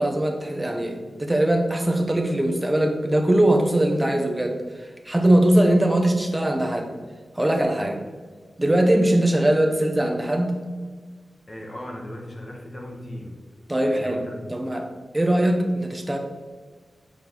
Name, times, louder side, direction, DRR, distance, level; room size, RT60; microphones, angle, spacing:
voice 1, 0.0-6.9 7.3-8.0 8.6-10.6 13.7-16.2, right 1 dB, 10° right, 3 dB, 0.8 m, -21 dB
voice 2, 11.5-13.4 13.8-14.7, left 1 dB, 25° left, 0 dB, 1.1 m, -37 dB
7.2 x 4.4 x 3.8 m, 1.5 s
wide cardioid pair, 160°, 0 cm